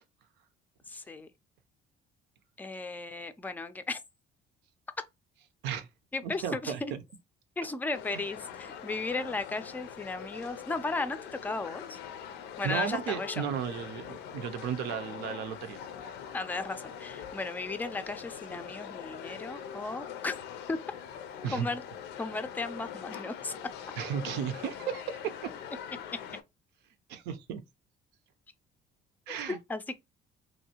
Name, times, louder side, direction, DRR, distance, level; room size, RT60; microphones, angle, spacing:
voice 1, 0.9-1.3 2.6-4.0 6.1-6.9 7.6-11.2 11.4-12.0 12.6-13.4 16.3-20.4 20.7-20.8 21.5-21.8 22.2-23.5 29.3-29.9, left 3 dB, 10° left, 0.4 m, -35 dB
voice 2, 6.2-7.0 12.6-15.8 21.4-21.7 24.0-25.5 27.1-27.6 29.3-29.6, right 8 dB, 90° right, 0.6 m, -34 dB
sound 1, 7.9-26.4, left 8 dB, 80° left, 0.5 m, -43 dB
3.1 x 2.7 x 2.8 m
cardioid pair, 110°, 17 cm